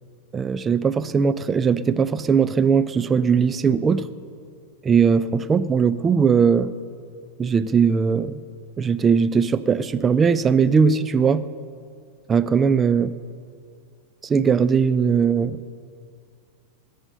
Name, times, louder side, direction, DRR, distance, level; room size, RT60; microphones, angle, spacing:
voice 1, 0.3-4.1 4.8-6.7 7.4-8.4 8.8-11.5 12.3-13.1 14.2-15.8, right 6 dB, 20° right, 12 dB, 0.5 m, -19 dB
19.5 x 8.0 x 5.4 m, 2.3 s
figure-of-eight pair, 90°, 0 cm